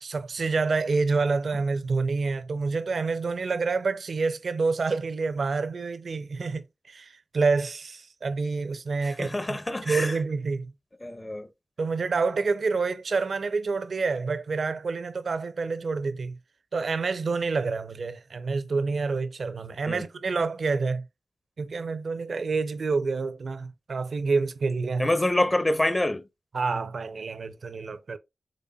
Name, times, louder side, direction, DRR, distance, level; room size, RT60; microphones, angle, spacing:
voice 1, 0.0-10.7 11.8-16.4 16.7-21.0 21.6-25.1 26.5-28.2, right 4 dB, 70° right, 0.4 m, -28 dB
voice 2, 9.0-10.2 11.0-11.5 19.9-20.0 25.0-26.2, left 1 dB, 30° left, 0.6 m, -26 dB
4.0 x 3.2 x 2.3 m
cardioid pair, 40°, 0 cm